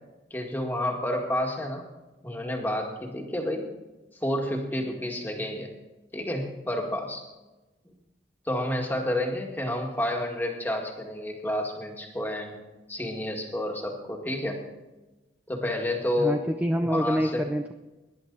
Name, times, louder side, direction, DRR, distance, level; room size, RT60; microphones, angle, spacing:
voice 1, 0.3-1.8 2.2-3.7 4.2-5.7 6.1-7.2 7.9-8.0 8.5-12.6 12.9-14.6 15.5-16.4 16.8-17.4, left 1 dB, 10° left, 1 dB, 1.9 m, -30 dB
voice 2, 16.2-17.7, equal, 10° right, 5 dB, 0.5 m, -26 dB
18.5 x 10.5 x 4.0 m, 1.1 s
head